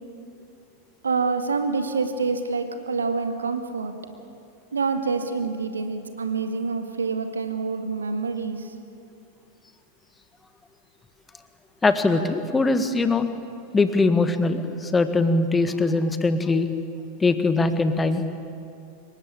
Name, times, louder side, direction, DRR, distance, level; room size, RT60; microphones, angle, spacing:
voice 1, 1.0-3.9 4.7-8.7, right 4 dB, 75° right, 7 dB, 2.1 m, -27 dB
voice 2, 11.8-13.3 13.7-16.7 17.2-18.2, left 3 dB, 15° left, 9 dB, 1.7 m, -21 dB
26.0 x 23.0 x 8.5 m, 2.5 s
figure-of-eight pair, 90°, 0 cm